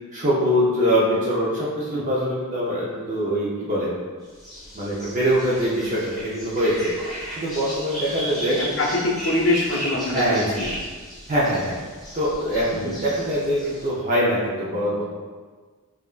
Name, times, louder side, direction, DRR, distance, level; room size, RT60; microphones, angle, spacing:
voice 1, 0.1-3.9 4.7-6.9 7.4-8.6 10.1-10.4 11.3-11.8 12.1-15.1, equal, 35° right, -7 dB, 0.6 m, -23 dB
sound 1, 4.4-13.9, equal, ahead, 1.1 m, -35 dB
voice 2, 8.5-10.8 12.7-13.0, left 2 dB, 55° left, -2 dB, 0.7 m, -24 dB
5.3 x 2.6 x 2.4 m, 1.5 s
head